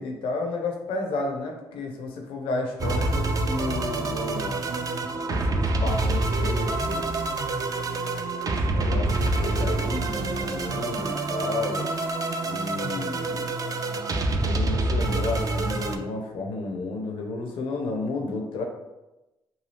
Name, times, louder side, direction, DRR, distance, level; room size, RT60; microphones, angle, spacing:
voice 1, 0.0-4.5 5.3-7.2 8.5-11.9 12.4-13.6 14.3-18.7, left 3 dB, 75° left, 2 dB, 0.6 m, -32 dB
sound 1, 2.8-16.0, right 2 dB, 40° right, 0.4 m, -26 dB
2.7 x 2.4 x 3.2 m, 0.99 s
supercardioid pair, 50°, 9 cm